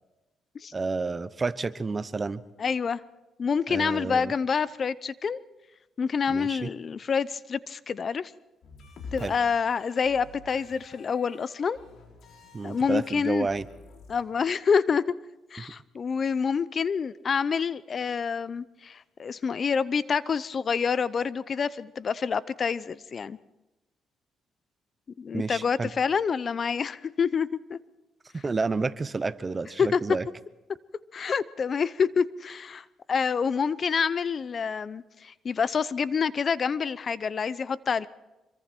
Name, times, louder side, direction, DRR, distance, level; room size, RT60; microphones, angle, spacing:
voice 1, 0.7-2.4 3.7-4.3 6.3-6.7 9.2-9.4 12.5-13.7 25.3-25.9 28.3-30.2, right 4 dB, 30° right, 15 dB, 0.9 m, -30 dB
voice 2, 2.6-3.0 3.4-5.4 6.0-8.3 9.1-11.8 12.6-13.5 14.1-15.0 15.5-23.4 25.2-27.8 29.8-30.0 31.1-38.1, left 6 dB, 45° left, 17 dB, 0.7 m, -27 dB
sound 1, 8.6-14.2, left 3 dB, 70° left, 6.2 m, -48 dB
25.5 x 23.5 x 4.5 m, 1.0 s
cardioid pair, 90°, 0 cm